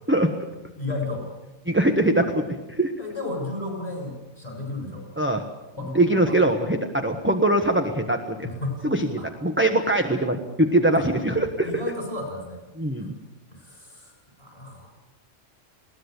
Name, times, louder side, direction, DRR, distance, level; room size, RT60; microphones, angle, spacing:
voice 1, 0.8-1.3 3.0-5.0 5.8-6.4 8.4-8.8 9.2-9.3 10.9-11.1 11.6-12.6 13.5-14.9, left 2 dB, 30° left, 1 dB, 7.6 m, -33 dB
voice 2, 1.7-2.9 5.2-5.4 5.9-8.5 8.8-11.7 12.8-13.1, right 1 dB, 10° right, 5 dB, 1.2 m, -22 dB
21.0 x 18.0 x 8.2 m, 1.1 s
omnidirectional pair, 1.3 m